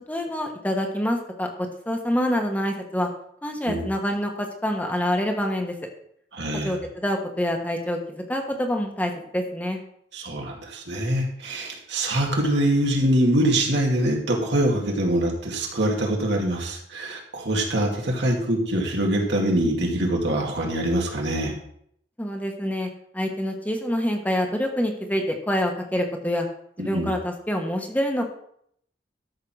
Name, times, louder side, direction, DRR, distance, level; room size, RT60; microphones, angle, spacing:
voice 1, 0.1-1.5 1.9-3.1 3.4-5.7 6.5-9.8 22.2-22.9 23.1-26.5 26.8-28.2, equal, 10° left, 3 dB, 1.2 m, -26 dB
voice 2, 6.3-6.8 10.1-21.6 26.8-27.1, right 1 dB, 75° right, 0 dB, 2.4 m, -24 dB
13.0 x 4.8 x 6.3 m, 0.68 s
head